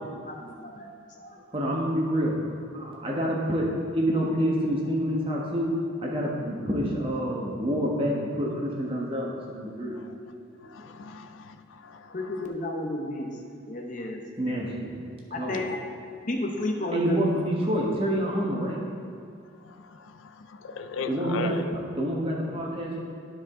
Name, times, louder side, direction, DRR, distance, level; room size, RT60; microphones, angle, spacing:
voice 1, 0.3-1.4 12.1-13.3 13.7-14.2 15.3-15.8 16.3-17.2, left 1 dB, 40° left, 1 dB, 0.8 m, -32 dB
voice 2, 1.5-2.4 2.7-3.7 3.9-5.7 6.0-10.0 14.4-14.9 15.4-15.6 16.9-18.8 21.1-23.0, equal, 25° right, -3 dB, 1.2 m, -27 dB
voice 3, 10.7-11.5 11.8-12.1 20.0-20.1 20.5-21.8, left 5 dB, 70° left, 8 dB, 0.4 m, -36 dB
12.0 x 4.9 x 3.7 m, 2.4 s
head